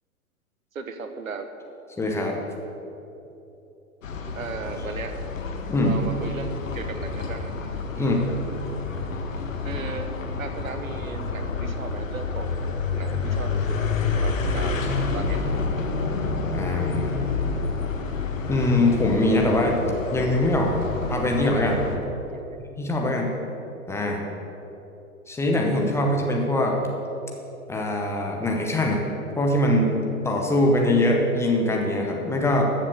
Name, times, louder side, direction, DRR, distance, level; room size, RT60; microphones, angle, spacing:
voice 1, 0.7-1.5 4.3-5.2 5.8-7.5 7.9-8.1 9.6-10.1 10.4-12.6 12.9-13.8 14.1-14.8 15.1-15.4 22.2-22.6, right 4 dB, 70° right, 8 dB, 1.3 m, -36 dB
voice 2, 2.0-2.4 5.7-6.0 8.0-8.2 16.5-17.2 18.5-19.8 20.1-20.8 21.1-21.8 22.8-23.4 23.9-24.2 25.3-26.8 27.7-29.1 29.4-30.0 30.2-32.6, left 1 dB, 5° left, 0 dB, 0.8 m, -22 dB
sound 1, 4.0-22.0, left 4 dB, 65° left, 1.5 m, -29 dB
14.0 x 7.5 x 6.8 m, 3.0 s
figure-of-eight pair, 110°, 43 cm